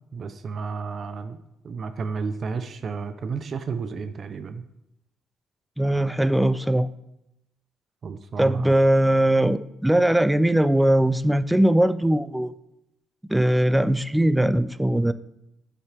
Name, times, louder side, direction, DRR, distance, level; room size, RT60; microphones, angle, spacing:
voice 1, 0.0-4.6 8.0-8.7, right 5 dB, 50° right, 9 dB, 0.6 m, -32 dB
voice 2, 5.8-6.9 8.4-12.5 13.3-15.1, right 1 dB, 5° right, 13 dB, 0.4 m, -20 dB
9.6 x 7.4 x 3.4 m, 0.88 s
cardioid pair, 90°, 0 cm